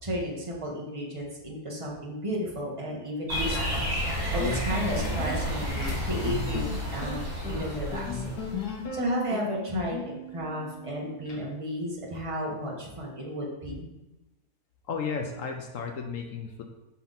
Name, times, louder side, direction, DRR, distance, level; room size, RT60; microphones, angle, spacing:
voice 1, 0.0-3.8 4.3-8.3 8.9-13.9, equal, 25° right, -3 dB, 1.0 m, -33 dB
sound 1, 3.3-8.8, equal, 40° right, 1.8 m, -31 dB
sound 2, 4.4-11.4, left 4 dB, 85° left, 1.6 m, -37 dB
voice 2, 14.9-16.6, left 5 dB, 65° left, 3 dB, 0.9 m, -33 dB
5.6 x 4.2 x 3.9 m, 1.0 s
omnidirectional pair, 1.7 m